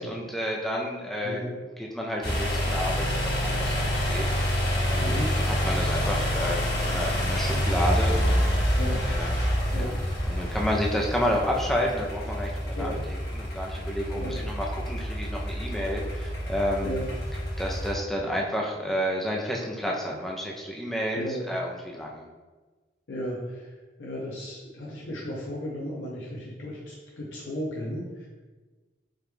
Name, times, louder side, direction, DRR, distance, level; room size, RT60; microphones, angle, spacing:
voice 1, 0.0-1.4 1.8-4.3 4.9-8.8 9.0-9.3 10.3-17.0 17.6-22.2, equal, ahead, -2 dB, 0.5 m, -30 dB
sound 1, 2.2-17.9, equal, 60° left, 1.2 m, -27 dB
voice 2, 5.0-5.3 8.8-9.0 9.7-9.9 12.7-13.0 14.1-14.4 16.8-17.0 21.1-21.4 23.1-28.3, equal, 80° left, -5 dB, 0.7 m, -35 dB
4.9 x 2.3 x 3.1 m, 1.3 s
head